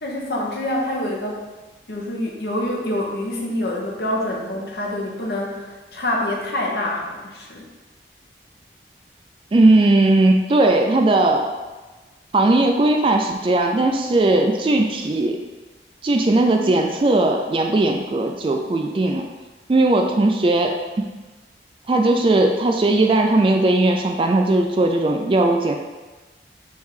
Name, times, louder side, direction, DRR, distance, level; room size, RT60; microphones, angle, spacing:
voice 1, 0.0-1.4 1.9-7.7, left 1 dB, 65° left, -2 dB, 0.8 m, -26 dB
voice 2, 9.5-11.5 12.3-15.4 16.0-19.3 19.7-21.1 21.9-25.7, right 2 dB, 30° right, 3 dB, 0.3 m, -18 dB
3.5 x 3.2 x 4.8 m, 1.2 s
head